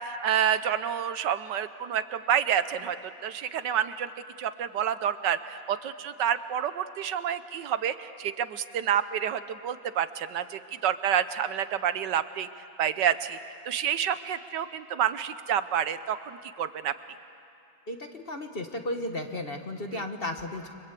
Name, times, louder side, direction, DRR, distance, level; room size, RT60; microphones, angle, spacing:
voice 1, 0.0-3.0 3.2-4.1 4.4-12.5 12.8-13.4 13.7-16.9, right 9 dB, 75° right, 12 dB, 1.4 m, -28 dB
voice 2, 17.9-20.7, left 1 dB, 35° left, 5 dB, 1.5 m, -34 dB
30.0 x 24.0 x 8.3 m, 2.6 s
omnidirectional pair, 2.0 m